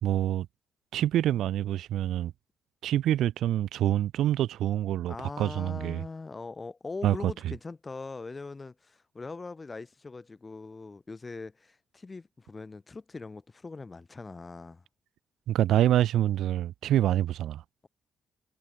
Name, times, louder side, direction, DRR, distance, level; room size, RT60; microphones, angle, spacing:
voice 1, 0.0-0.5 0.9-2.3 2.8-6.0 7.0-7.3 15.5-17.6, right 12 dB, 80° right, 0.4 m, -26 dB
voice 2, 5.1-14.8, left 3 dB, 25° left, 2.2 m, -41 dB
cardioid pair, 90°, 0 cm